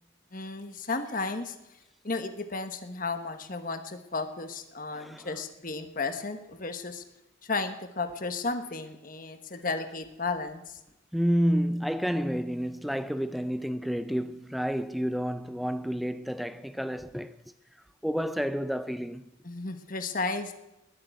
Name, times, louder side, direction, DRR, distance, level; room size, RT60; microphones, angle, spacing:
voice 1, 0.3-1.6 2.0-7.0 7.4-10.8 19.4-20.5, left 3 dB, 40° left, 1.2 m, -33 dB
voice 2, 4.9-5.3 11.1-17.3 18.0-19.2, equal, ahead, 0.5 m, -30 dB
20.0 x 6.8 x 9.1 m
head